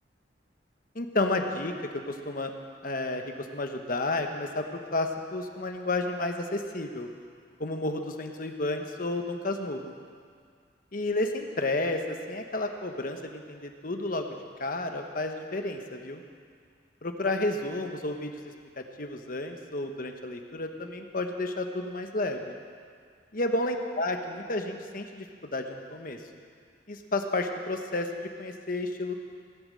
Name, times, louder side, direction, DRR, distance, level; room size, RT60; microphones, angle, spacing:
voice 1, 0.9-1.7 2.1-2.5 2.8-7.1 7.6-9.9 10.9-16.2 17.0-22.6 23.3-25.3 25.5-26.2 26.9-28.1 28.4-29.1, left 2 dB, 50° left, 5 dB, 1.2 m, -31 dB
17.0 x 8.8 x 7.6 m, 2.1 s
head